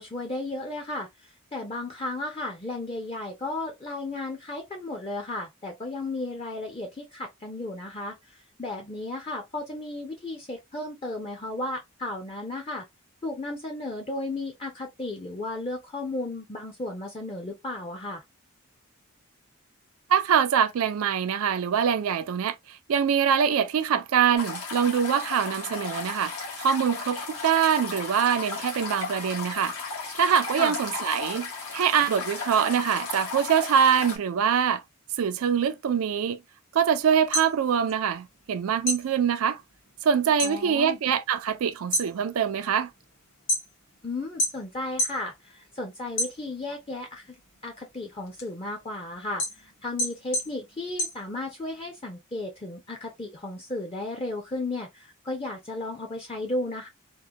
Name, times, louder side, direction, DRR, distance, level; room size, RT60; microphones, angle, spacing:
voice 1, 0.0-12.8 13.2-18.2 30.6-30.7 40.4-41.0 44.0-47.4 47.6-56.9, left 2 dB, 25° left, 0.5 m, -34 dB
voice 2, 20.1-29.8 30.1-34.8 35.2-36.4 36.7-39.6 40.0-42.9, right 7 dB, 80° right, 0.4 m, -24 dB
sound 1, 24.4-34.2, left 4 dB, 85° left, 1.7 m, -35 dB
sound 2, 37.2-38.5 38.8-40.6 40.9-41.4 41.8-44.0 44.4-45.2 45.6-46.8 47.3-51.8, left 1 dB, 60° left, 1.6 m, -30 dB
3.7 x 2.1 x 2.6 m
head